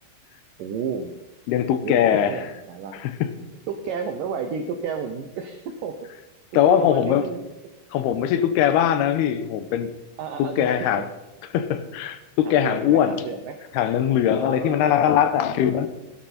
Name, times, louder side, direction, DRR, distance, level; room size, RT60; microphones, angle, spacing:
voice 1, 0.6-1.1 1.8-3.0 3.7-6.1 6.5-7.4 10.2-10.9 12.4-13.6 14.4-15.1 15.4-15.9, right 6 dB, 85° right, 6 dB, 1.9 m, -32 dB
voice 2, 1.5-2.3 2.9-3.1 6.5-7.2 7.9-9.9 10.4-11.0 11.5-13.2 13.7-15.9, left 10 dB, 70° left, 11 dB, 2.7 m, -21 dB
18.0 x 12.0 x 4.3 m, 1.0 s
omnidirectional pair, 5.3 m